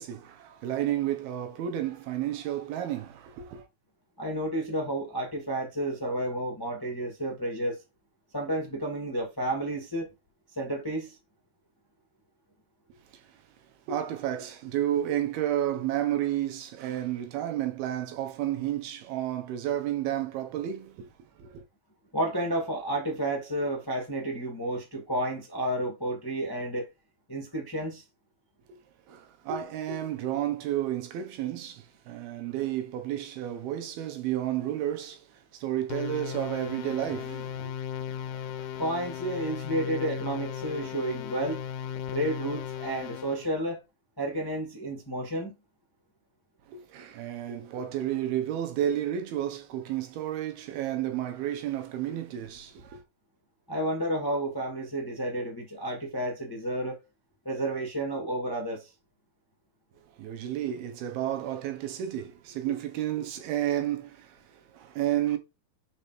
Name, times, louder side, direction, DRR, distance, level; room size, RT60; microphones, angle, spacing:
voice 1, 0.0-3.7 13.1-13.2 13.9-21.1 21.4-21.6 29.1-35.3 35.5-37.7 46.7-53.0 60.2-65.4, right 11 dB, 85° right, 3.1 m, -31 dB
voice 2, 4.2-7.8 8.3-10.1 10.5-11.2 22.1-26.9 27.3-28.0 38.8-41.6 42.1-43.8 44.2-45.5 53.7-57.0 57.4-58.9, right 1 dB, 20° left, 0.6 m, -31 dB
sound 1, 35.9-43.5, left 9 dB, 75° left, 1.8 m, -36 dB
5.8 x 5.2 x 4.5 m
omnidirectional pair, 4.3 m